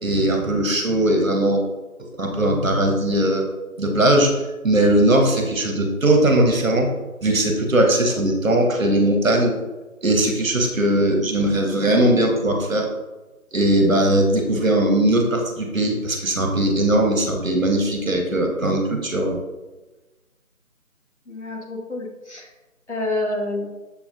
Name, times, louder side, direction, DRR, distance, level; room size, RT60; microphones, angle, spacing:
voice 1, 0.0-1.6 2.1-3.5 3.8-6.9 7.2-9.5 10.0-12.9 13.5-19.4, right 1 dB, 65° right, 2 dB, 0.9 m, -19 dB
voice 2, 21.3-22.5 22.9-23.7, left 2 dB, 50° left, -2 dB, 0.9 m, -28 dB
6.8 x 2.4 x 2.5 m, 1.1 s
figure-of-eight pair, 175°, 43 cm